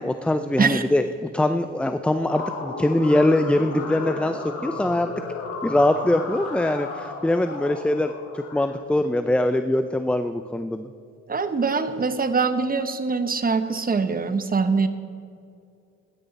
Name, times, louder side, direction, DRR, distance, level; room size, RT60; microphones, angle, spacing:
voice 1, 0.0-5.1 5.6-10.9, left 1 dB, 5° left, 9 dB, 0.5 m, -23 dB
sound 1, 2.1-8.7, left 3 dB, 50° left, 3.2 m, -34 dB
voice 2, 11.3-14.9, right 4 dB, 30° right, 11 dB, 1.0 m, -23 dB
15.0 x 11.5 x 4.1 m, 2.4 s
cardioid pair, 90°, 30 cm